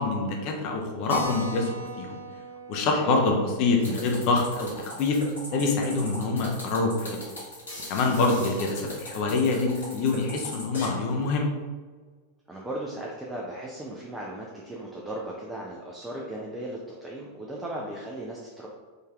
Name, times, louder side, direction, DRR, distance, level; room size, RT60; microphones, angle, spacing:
voice 1, 0.0-2.2 2.7-5.2 5.5-7.2 7.9-11.5, left 3 dB, 45° left, 1 dB, 0.7 m, -25 dB
Keyboard (musical), 1.1-6.2 6.4-6.5 6.8-6.9 7.2-7.3 7.8-8.2, right 1 dB, 90° right, 0.9 m, -41 dB
sound 1, 3.8-10.9, left 1 dB, 75° left, 1.3 m, -39 dB
voice 2, 12.5-18.7, right 1 dB, 10° right, -3 dB, 0.5 m, -37 dB
3.9 x 2.6 x 3.4 m, 1.5 s
figure-of-eight pair, 90°, 0 cm